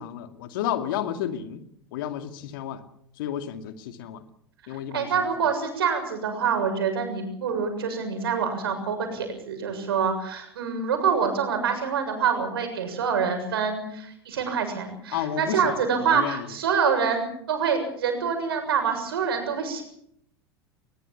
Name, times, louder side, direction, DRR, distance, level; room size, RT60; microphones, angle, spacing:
voice 1, 0.0-1.6 1.9-2.8 3.2-4.2 4.7-5.3 15.1-16.5, left 10 dB, 60° left, 8 dB, 2.4 m, -31 dB
voice 2, 4.9-19.8, right 6 dB, 70° right, 6 dB, 7.0 m, -26 dB
22.0 x 21.5 x 7.1 m, 0.69 s
figure-of-eight pair, 80°, 13 cm